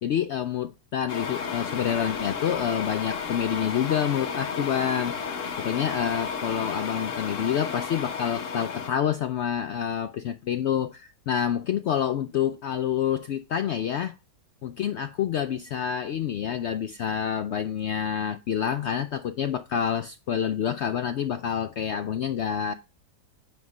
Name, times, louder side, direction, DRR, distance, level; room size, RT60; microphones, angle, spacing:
voice 1, 0.0-5.3 5.6-14.1 14.6-22.7, left 9 dB, 90° left, 0.6 m, -28 dB
sound 1, 1.1-8.9, left 6 dB, 55° left, 1.3 m, -32 dB
9.6 x 3.6 x 5.2 m
omnidirectional pair, 1.7 m